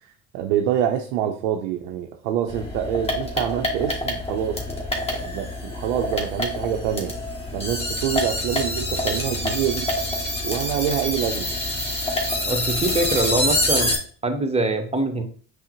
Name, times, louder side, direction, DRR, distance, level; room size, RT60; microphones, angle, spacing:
voice 1, 0.3-4.6 5.1-7.1 7.5-9.9 10.4-11.5, right 10 dB, 85° right, 3 dB, 0.5 m, -26 dB
sound 1, 2.5-14.0, left 1 dB, 15° left, 1.3 m, -26 dB
voice 2, 12.5-13.9 14.2-15.2, right 2 dB, 15° right, 5 dB, 0.8 m, -23 dB
5.5 x 2.0 x 2.9 m, 0.43 s
hypercardioid pair, 65°, 42 cm